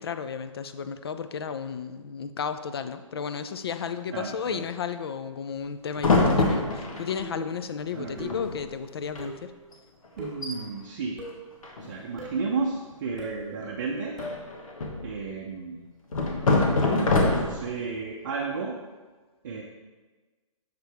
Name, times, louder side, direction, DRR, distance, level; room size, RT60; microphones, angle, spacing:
voice 1, 0.0-9.5, left 6 dB, 45° left, 11 dB, 0.4 m, -33 dB
voice 2, 4.1-4.6 7.9-8.3 10.2-11.2 11.8-14.2 15.0-15.9 16.8-18.8 19.4-19.6, right 4 dB, 35° right, -2 dB, 0.6 m, -33 dB
sound 1, 6.0-7.2 8.0-8.1 8.3-8.7 9.0-9.2 9.7-9.8 10.2-10.6 11.6-12.2 14.2-15.1 16.1-17.8, left 2 dB, 85° left, 1.2 m, -24 dB
sound 2, 7.2-7.6 8.2-8.6 9.2-9.5 10.2-10.5 11.2-11.5 12.2-12.5 13.2-13.4 14.2-14.4, equal, ahead, 1.5 m, -40 dB
6.6 x 4.5 x 3.4 m, 1.3 s
hypercardioid pair, 165°, 17 cm